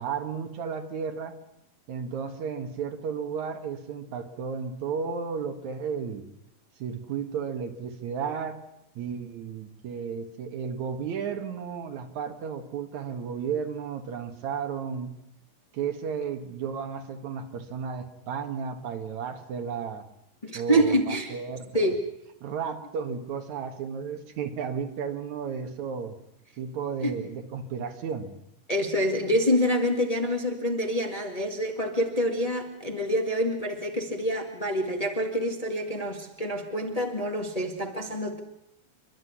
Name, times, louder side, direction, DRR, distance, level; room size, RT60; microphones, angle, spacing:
voice 1, 0.0-1.3 1.9-6.3 6.8-8.6 9.0-15.1 15.7-20.0 20.5-21.7 22.4-26.2 26.6-28.3, right 6 dB, 70° right, 7 dB, 2.9 m, -33 dB
voice 2, 20.4-21.3 21.7-22.0 27.0-27.1 28.7-38.4, equal, 15° left, 3 dB, 1.6 m, -26 dB
28.5 x 12.0 x 9.7 m, 0.80 s
omnidirectional pair, 3.5 m